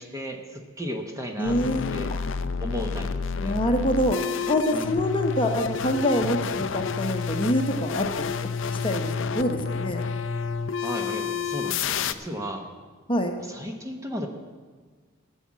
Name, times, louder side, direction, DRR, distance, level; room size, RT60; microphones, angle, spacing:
voice 1, 0.0-1.6 1.9-2.1 2.6-3.6 4.7-4.9 9.9-10.1 10.8-12.7 13.4-14.3, equal, 15° right, 3 dB, 1.0 m, -35 dB
sound 1, 1.4-12.1, left 5 dB, 55° left, 0.5 m, -29 dB
voice 2, 1.4-2.2 3.4-4.2 4.5-8.3 8.7-10.1 13.1-13.3, equal, 25° left, 4 dB, 0.9 m, -26 dB
14.5 x 7.2 x 7.4 m, 1.5 s
head